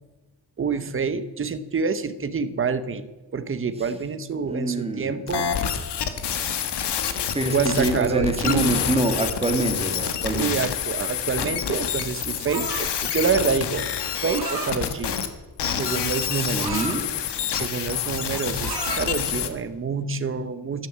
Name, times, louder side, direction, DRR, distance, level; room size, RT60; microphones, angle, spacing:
voice 1, 0.6-5.5 7.5-8.7 10.0-13.9 14.2-15.2 15.8-16.9 17.5-20.9, right 5 dB, 30° right, 11 dB, 0.9 m, -27 dB
voice 2, 4.5-5.2 7.3-10.6 16.4-17.0, right 2 dB, 15° right, 6 dB, 1.7 m, -25 dB
Glitch Sounds, 5.3-15.3 15.6-19.5, left 8 dB, 75° left, 1.5 m, -28 dB
sound 1, 12.5-13.0 14.0-14.7 15.6-17.0 17.5-17.7 18.0-19.1, right 5 dB, 65° right, 3.0 m, -34 dB
13.5 x 10.5 x 7.3 m, 1.2 s
wide cardioid pair, 165°, 41 cm